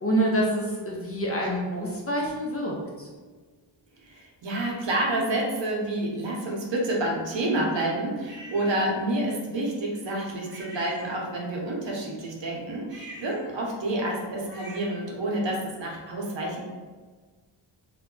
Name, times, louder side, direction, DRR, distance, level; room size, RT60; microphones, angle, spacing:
voice 1, 0.0-3.1, right 1 dB, 30° left, -3 dB, 0.4 m, -27 dB
voice 2, 4.0-16.7, right 1 dB, 65° right, -2 dB, 0.8 m, -29 dB
sound 1, 8.2-8.8 10.5-11.6 12.8-15.1, right 1 dB, 25° right, 0.5 m, -45 dB
2.2 x 2.0 x 3.6 m, 1.4 s
wide cardioid pair, 120°, 47 cm